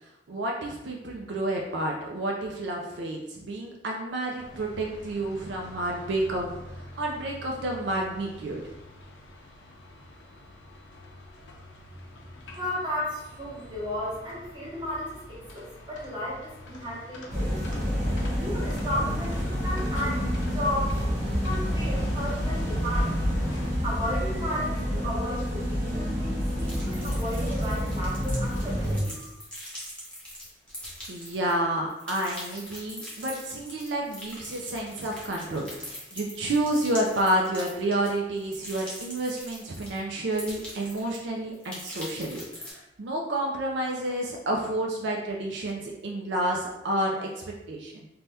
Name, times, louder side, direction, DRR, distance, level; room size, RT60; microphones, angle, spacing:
voice 1, 0.3-6.6 6.9-8.6 31.1-48.1, right 1 dB, 75° right, 0 dB, 0.4 m, -30 dB
sound 1, 4.4-23.7, left 1 dB, 85° left, 0.5 m, -46 dB
voice 2, 12.5-17.8 18.4-21.0 21.4-23.1 23.8-29.3, equal, 25° right, -7 dB, 0.9 m, -34 dB
sound 2, 17.3-29.0, equal, 40° right, 1.1 m, -28 dB
sound 3, 26.6-31.6 31.9-40.0 40.3-41.2 41.5-42.7, equal, 5° left, 0.7 m, -42 dB
2.6 x 2.2 x 3.4 m, 0.90 s
head